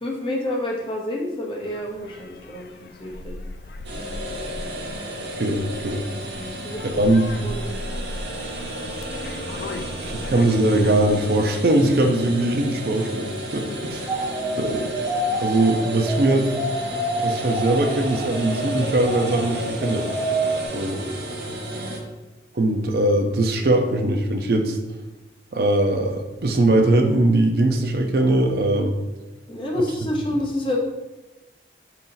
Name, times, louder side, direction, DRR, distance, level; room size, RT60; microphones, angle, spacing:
voice 1, 0.0-3.5 6.4-7.8 9.7-10.2 13.6-14.0 21.7-22.0 29.5-30.8, left 1 dB, 30° left, -1 dB, 0.7 m, -29 dB
sound 1, 1.6-11.7, left 2 dB, 60° left, 0.3 m, -38 dB
sound 2, 3.8-22.0, right 1 dB, 80° right, 0.8 m, -33 dB
voice 2, 5.3-6.0 7.0-7.3 10.0-14.1 14.6-14.9 15.4-16.5 17.2-20.1 20.7-21.0 22.5-24.8 25.5-29.0, right 1 dB, 60° right, 5 dB, 0.5 m, -21 dB
sound 3, 14.1-20.7, right 1 dB, 10° right, 0.6 m, -28 dB
4.9 x 2.8 x 3.8 m, 1.1 s
head